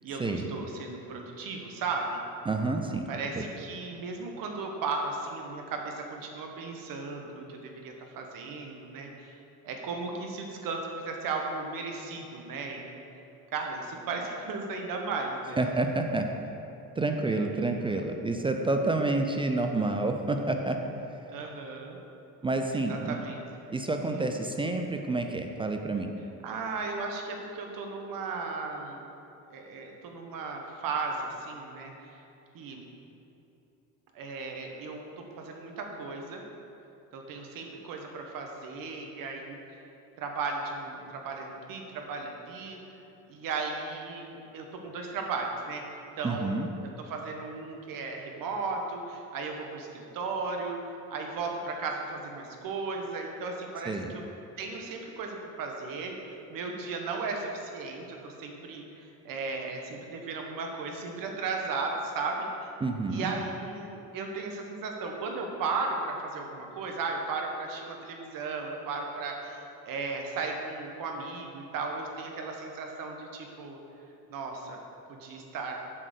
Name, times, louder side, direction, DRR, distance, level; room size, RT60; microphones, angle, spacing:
voice 1, 0.0-2.2 3.1-9.3 9.6-13.0 13.5-15.6 17.3-17.7 21.3-22.0 22.9-23.4 24.1-24.4 26.4-29.1 29.5-32.2 32.5-32.8 34.1-36.4 37.1-39.8 40.2-42.8 43.3-45.9 46.2-50.8 51.1-54.2 54.6-62.7 63.1-73.8 74.3-74.8 75.1-75.7, right 4 dB, 65° right, 2 dB, 1.2 m, -36 dB
voice 2, 2.5-3.1 3.3-3.5 15.6-16.3 17.0-20.8 22.4-23.2 23.7-26.1 46.2-46.7 53.9-54.1 62.8-63.3, right 2 dB, 15° right, 4 dB, 0.3 m, -29 dB
7.5 x 4.1 x 6.5 m, 2.8 s
cardioid pair, 115°, 37 cm